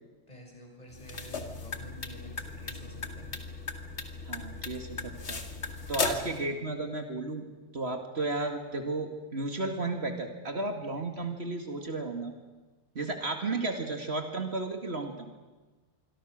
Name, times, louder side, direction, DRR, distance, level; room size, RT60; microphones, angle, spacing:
voice 1, 0.3-3.3, equal, 35° left, 0 dB, 6.7 m, -49 dB
sound 1, 0.9-6.4, left 3 dB, 70° left, 2.2 m, -36 dB
voice 2, 4.3-5.4 5.9-7.4 7.7-12.3 13.0-15.3, right 2 dB, 65° right, 4 dB, 2.5 m, -33 dB
26.5 x 23.0 x 6.6 m, 1.3 s
omnidirectional pair, 1.2 m